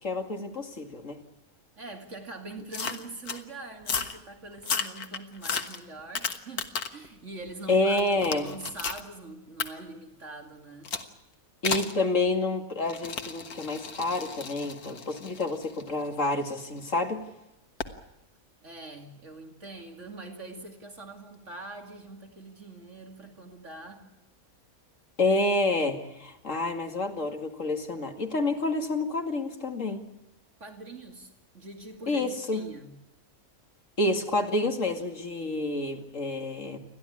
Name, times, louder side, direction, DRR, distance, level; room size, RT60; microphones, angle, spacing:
voice 1, 0.0-1.2 7.7-8.5 11.6-17.2 25.2-30.1 32.1-32.6 34.0-36.8, left 2 dB, 60° left, 5 dB, 2.7 m, -28 dB
voice 2, 1.8-8.0 8.3-10.9 18.6-24.1 30.6-33.0, right 2 dB, 55° right, 3 dB, 2.8 m, -43 dB
sound 1, 2.7-3.4 3.8-4.2 4.6-7.1 7.5-9.0 9.6-9.7 10.8-11.1 11.6-12.0 12.8-16.8 17.8-18.0, left 5 dB, 85° left, 2.0 m, -34 dB
30.0 x 12.0 x 9.8 m, 0.89 s
omnidirectional pair, 1.5 m